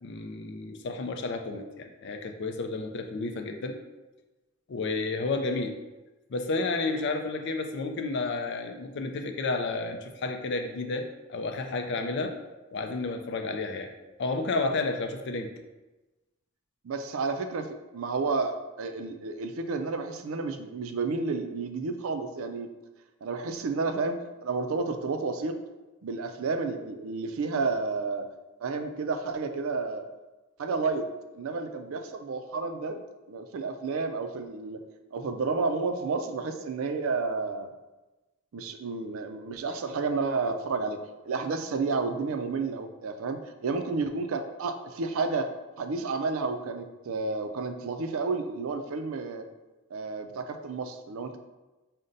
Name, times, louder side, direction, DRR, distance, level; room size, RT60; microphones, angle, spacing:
voice 1, 0.0-3.8 4.7-5.7 6.3-12.4 12.7-13.9 14.2-15.5, left 3 dB, 55° left, 6 dB, 0.4 m, -31 dB
voice 2, 16.8-22.7 23.2-25.6 26.0-28.3 28.6-30.0 30.6-31.0 31.3-33.0 33.3-34.8 35.1-37.7 38.5-45.5 45.8-49.4 49.9-51.4, right 4 dB, 75° right, 7 dB, 0.4 m, -31 dB
5.1 x 2.2 x 3.8 m, 1.1 s
head